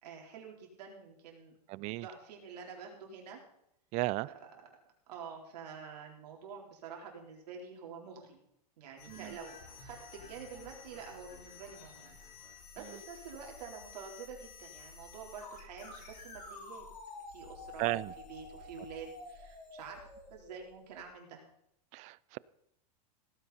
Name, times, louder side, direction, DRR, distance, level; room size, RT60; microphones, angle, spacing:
voice 1, 0.0-1.6 1.9-3.4 4.3-4.8 5.1-8.4 8.8-12.1 12.4-16.8 17.3-18.0 18.3-20.0 20.3-21.4, right 6 dB, 75° right, 0 dB, 4.2 m, -48 dB
voice 2, 1.7-2.1 3.9-4.3 9.1-9.3 17.8-18.1 21.9-22.4, right 20 dB, 35° right, 22 dB, 0.4 m, -34 dB
sound 1, 9.0-21.1, left 3 dB, 85° left, 6.6 m, -51 dB
17.5 x 9.6 x 4.3 m, 0.77 s
supercardioid pair, 130°, 21 cm